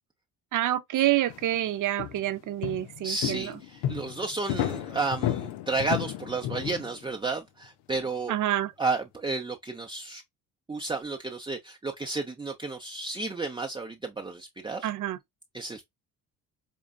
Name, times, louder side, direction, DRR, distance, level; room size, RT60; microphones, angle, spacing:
voice 1, 0.5-3.5 8.3-8.7 14.8-15.2, right 13 dB, 55° right, 0.7 m, -27 dB
sound 1, 1.0-1.7 2.0-7.1, left 12 dB, 85° left, 0.7 m, -33 dB
voice 2, 3.0-8.4 8.8-10.2 10.7-14.9 15.5-15.8, right 3 dB, 15° right, 0.7 m, -32 dB
5.4 x 2.3 x 2.3 m
cardioid pair, 90°, 38 cm